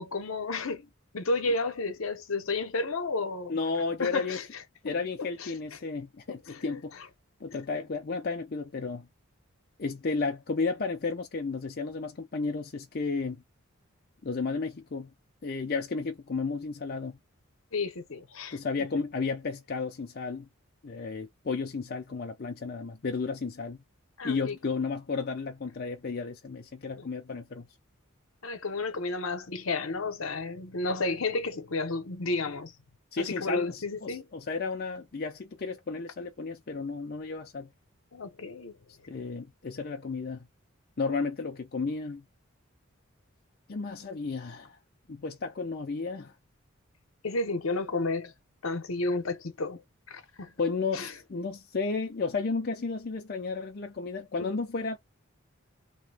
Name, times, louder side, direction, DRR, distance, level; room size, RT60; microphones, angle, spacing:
voice 1, 0.0-3.5 4.0-4.9 5.4-5.5 6.5-6.8 17.7-18.6 24.2-24.6 28.4-32.7 33.2-34.3 38.1-38.8 47.2-48.3 48.6-49.8 50.1-50.5 50.9-51.1 54.4-54.5, left 3 dB, 75° left, 0.8 m, -32 dB
voice 2, 3.5-4.4 4.8-6.9 7.4-9.1 9.8-13.4 14.2-15.1 15.4-17.2 18.5-20.5 20.8-23.8 24.2-27.7 33.1-37.7 39.1-40.5 41.0-42.2 43.7-44.8 45.1-46.3 50.6-55.0, left 4 dB, 45° left, 0.5 m, -33 dB
3.0 x 2.2 x 3.3 m
head